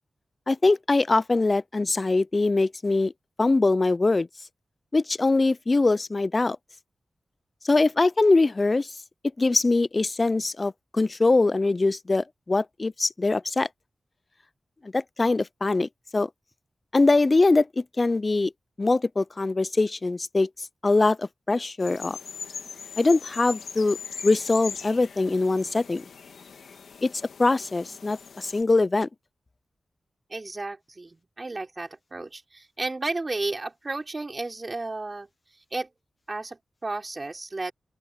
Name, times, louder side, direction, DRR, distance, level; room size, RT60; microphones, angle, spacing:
voice 1, 0.5-3.1 3.4-4.3 4.9-6.6 7.6-8.9 9.4-13.7 14.8-16.3 16.9-18.5 18.8-22.2 23.0-24.0 24.2-26.0 27.0-27.1 27.4-29.1, left 3 dB, 35° left, 0.3 m, -23 dB
sound 1, 21.8-28.6, left 6 dB, 90° left, 1.7 m, -40 dB
voice 2, 30.3-35.3 35.7-35.9 36.3-37.7, right 2 dB, 35° right, 4.2 m, -33 dB
open air
wide cardioid pair, 75°, 0 cm